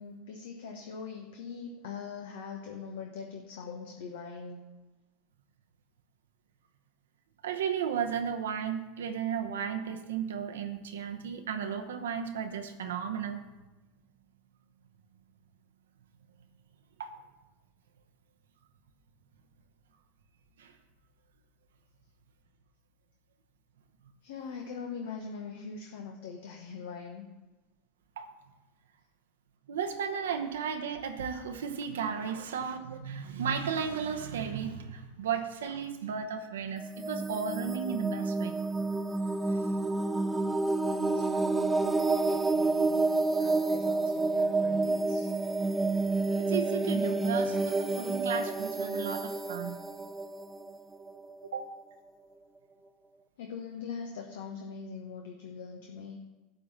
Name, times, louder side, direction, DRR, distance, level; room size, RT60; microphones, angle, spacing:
voice 1, 0.0-4.6 24.2-27.3 39.2-39.6 40.4-40.6 40.8-45.3 53.4-56.2, left 5 dB, 70° left, 2 dB, 1.0 m, -42 dB
voice 2, 7.4-13.4 17.0-17.2 20.6-20.7 28.2-28.3 29.7-38.6 39.5-39.6 46.4-49.8 51.4-51.7, right 7 dB, 75° right, 6 dB, 0.9 m, -34 dB
sound 1, 36.8-51.5, right 3 dB, 15° right, 0.5 m, -29 dB
11.5 x 3.9 x 7.3 m, 1.1 s
hypercardioid pair, 80°, 0 cm